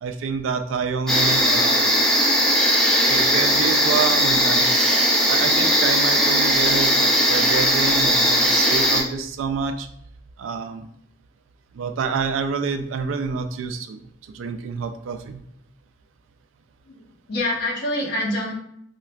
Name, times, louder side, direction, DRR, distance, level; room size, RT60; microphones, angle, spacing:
voice 1, 0.0-1.9 3.1-9.9 10.4-10.9 11.7-14.0 14.3-15.4, right 5 dB, 85° right, 7 dB, 0.3 m, -27 dB
sound 1, 1.1-9.0, equal, 5° left, 0.4 m, -18 dB
voice 2, 16.9-18.5, left 1 dB, 55° left, -3 dB, 0.9 m, -26 dB
4.3 x 2.3 x 2.2 m, 0.70 s
head